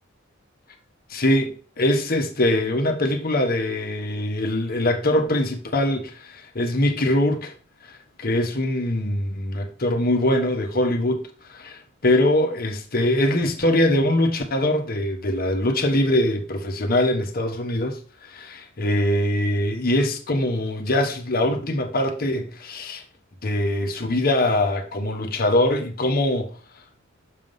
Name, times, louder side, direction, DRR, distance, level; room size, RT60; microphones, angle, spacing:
voice 1, 1.1-7.5 7.8-7.9 8.2-11.2 11.5-23.0 23.4-26.5, left 1 dB, 50° left, 1.2 m, -22 dB
6.6 x 3.7 x 5.3 m
head